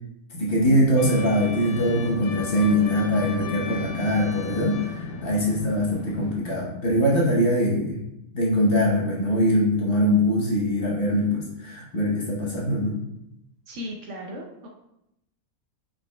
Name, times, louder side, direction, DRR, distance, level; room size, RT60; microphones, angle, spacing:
voice 1, 0.3-8.0 8.3-13.0, equal, 45° left, -4 dB, 1.1 m, -22 dB
sound 1, 1.0-6.4, left 4 dB, 85° left, 1.1 m, -34 dB
voice 2, 13.7-14.7, left 1 dB, 60° right, 0 dB, 1.0 m, -37 dB
5.1 x 4.4 x 2.2 m, 0.83 s
omnidirectional pair, 1.5 m